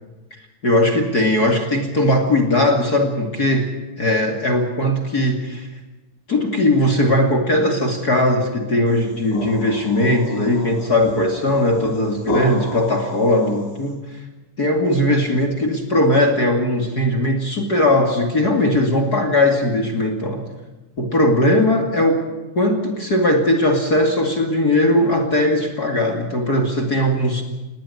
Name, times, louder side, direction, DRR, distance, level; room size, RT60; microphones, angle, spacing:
voice 1, 0.6-5.7 6.3-14.0 14.6-20.5 21.0-22.2 22.6-27.4, left 1 dB, 30° left, 5 dB, 2.1 m, -19 dB
sound 1, 8.9-13.9, left 1 dB, 70° left, 6.2 m, -31 dB
20.5 x 18.0 x 8.6 m, 1.1 s
omnidirectional pair, 4.6 m